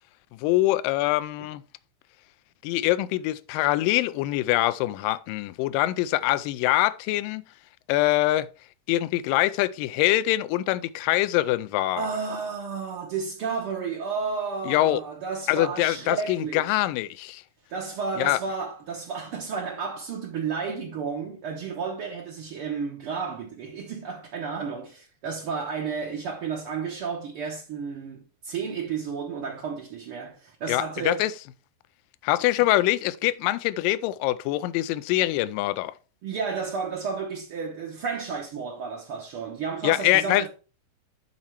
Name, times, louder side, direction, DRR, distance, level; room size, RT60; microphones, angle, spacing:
voice 1, 0.4-1.6 2.6-7.4 7.9-8.5 8.9-12.1 14.7-15.0 15.5-17.4 18.2-18.4 30.7-31.3 32.2-35.9 39.8-40.5, left 16 dB, 85° left, 2.2 m, -24 dB
voice 2, 12.0-16.8 17.7-31.2 36.2-40.5, right 5 dB, 65° right, 1.4 m, -32 dB
9.6 x 4.2 x 4.5 m
omnidirectional pair, 4.0 m